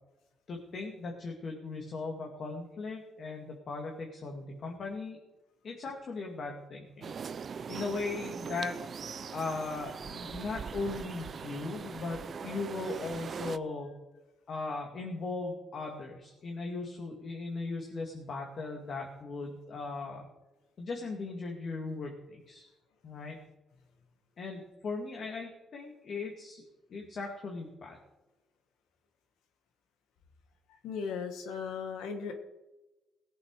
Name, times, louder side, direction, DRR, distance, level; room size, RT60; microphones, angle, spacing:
voice 1, 0.5-5.2 5.6-7.1 7.4-8.8 9.3-13.9 14.5-20.2 20.8-22.7 23.0-23.4 24.4-26.6 26.9-28.0, left 3 dB, 55° left, 1 dB, 2.3 m, -38 dB
sound 1, 7.0-13.6, right 6 dB, 50° right, 0.5 m, -41 dB
voice 2, 30.8-32.3, left 6 dB, 90° left, 6 dB, 1.8 m, -37 dB
18.0 x 8.0 x 4.9 m, 1.0 s
cardioid pair, 90°, 0 cm